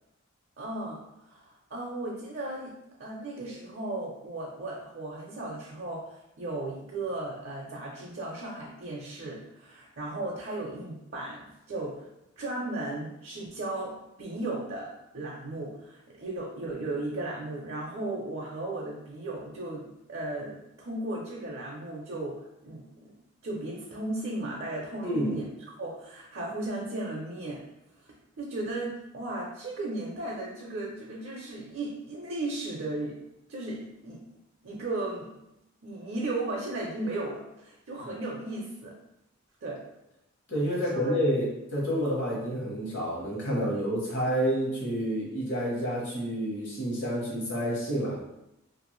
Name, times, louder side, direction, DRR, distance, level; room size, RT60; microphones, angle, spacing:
voice 1, 0.6-2.7 3.0-12.1 12.4-14.9 15.1-23.1 23.4-25.4 25.8-27.6 28.0-33.2 33.5-34.2 34.6-35.3 35.8-38.9 39.6-39.8 40.7-41.2, right 2 dB, 50° right, -3 dB, 0.5 m, -36 dB
voice 2, 25.0-25.4 40.5-48.2, equal, 55° left, -5 dB, 1.1 m, -29 dB
2.5 x 2.4 x 3.0 m, 0.88 s
head